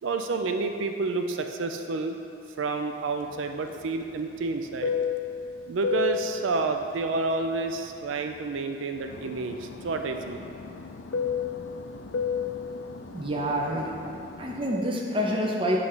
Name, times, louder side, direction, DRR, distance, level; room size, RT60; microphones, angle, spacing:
voice 1, 0.0-2.2 2.6-4.9 5.7-10.5, right 3 dB, 90° right, 6 dB, 0.4 m, -29 dB
Fixed-wing aircraft airplane, 3.2-8.6 8.9-14.8, left 6 dB, 70° left, 0.4 m, -33 dB
voice 2, 13.1-13.9 14.4-15.8, equal, 25° right, -2 dB, 0.6 m, -27 dB
7.9 x 3.3 x 5.5 m, 2.5 s
head